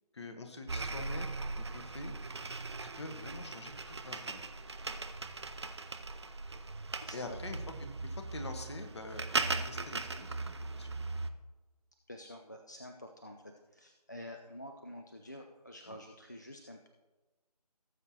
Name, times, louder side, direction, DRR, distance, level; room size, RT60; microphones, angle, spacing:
voice 1, 0.1-2.1 2.8-4.4 7.1-7.6 8.0-9.2 9.5-10.9 15.9-16.0, left 3 dB, 45° left, 6 dB, 1.2 m, -45 dB
sound 1, 0.7-11.3, right 3 dB, 45° right, 0.5 m, -39 dB
voice 2, 0.8-1.1 7.0-7.4 12.1-16.9, left 1 dB, 30° left, 3 dB, 0.4 m, -48 dB
17.5 x 7.5 x 2.8 m, 1.2 s
figure-of-eight pair, 160°, 20 cm